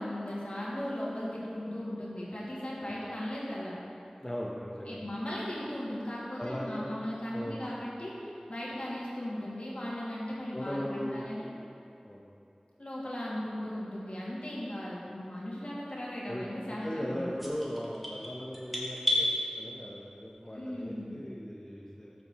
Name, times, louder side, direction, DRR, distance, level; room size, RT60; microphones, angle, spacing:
voice 1, 0.0-3.8 4.9-11.5 12.8-17.3 20.5-21.2, left 1 dB, 65° left, -7 dB, 2.3 m, -37 dB
voice 2, 4.2-5.0 6.4-7.1 7.3-7.6 10.5-11.3 12.0-12.2 16.3-16.4 16.8-19.3 19.6-22.1, equal, 25° left, -4 dB, 0.9 m, -38 dB
sound 1, 17.4-19.3, left 1 dB, ahead, 1.7 m, -31 dB
13.0 x 6.8 x 3.0 m, 2.6 s
wide cardioid pair, 45°, 2 cm